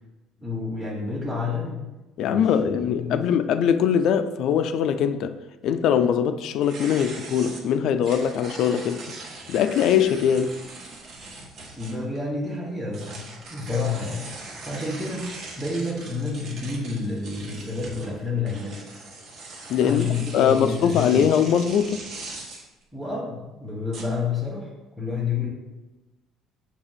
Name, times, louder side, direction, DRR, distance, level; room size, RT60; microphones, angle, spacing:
voice 1, 0.4-1.8 2.2-3.3 11.8-14.3 14.6-15.3 15.6-18.8 19.8-21.2 22.9-24.7 25.0-25.5, left 4 dB, 10° right, 1.2 m, -29 dB
voice 2, 2.2-5.4 5.6-9.1 9.5-10.6 19.7-20.1 20.3-22.0, left 8 dB, 55° left, 0.3 m, -22 dB
sound 1, 6.6-12.2 12.9-22.7 23.9-24.3, right 3 dB, 50° right, 1.1 m, -40 dB
6.1 x 2.9 x 5.7 m
cardioid pair, 155°, 0 cm